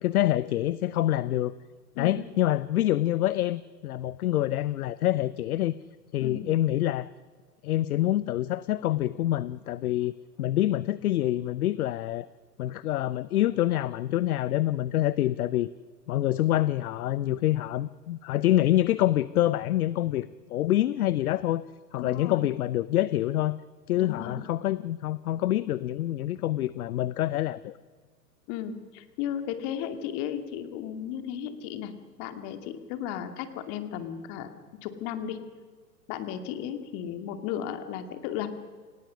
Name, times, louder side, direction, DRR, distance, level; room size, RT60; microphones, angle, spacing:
voice 1, 0.0-1.5 2.0-5.7 6.1-7.1 7.6-10.1 10.4-12.3 12.6-15.7 16.1-21.6 21.9-23.6 23.9-27.8, left 14 dB, 60° left, 18 dB, 0.8 m, -26 dB
voice 2, 6.2-6.5 22.0-22.4 23.9-24.4 28.5-31.9 32.2-34.5 34.8-35.4 36.1-38.5, left 9 dB, 40° left, 8 dB, 2.5 m, -35 dB
29.0 x 18.0 x 6.4 m, 1.5 s
hypercardioid pair, 115°, 50 cm